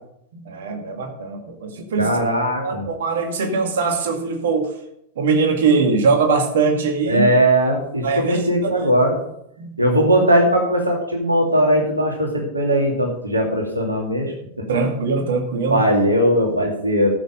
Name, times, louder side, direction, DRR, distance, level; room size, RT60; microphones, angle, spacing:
voice 1, 0.3-2.2 2.6-4.7 5.2-7.3 8.0-8.9 9.6-9.8 14.7-15.8, right 4 dB, 60° right, 4 dB, 2.0 m, -21 dB
voice 2, 2.0-2.8 7.1-9.2 9.8-14.6 15.7-17.1, equal, 80° right, 1 dB, 2.5 m, -19 dB
14.0 x 7.1 x 5.1 m, 0.75 s
figure-of-eight pair, 90°, 0 cm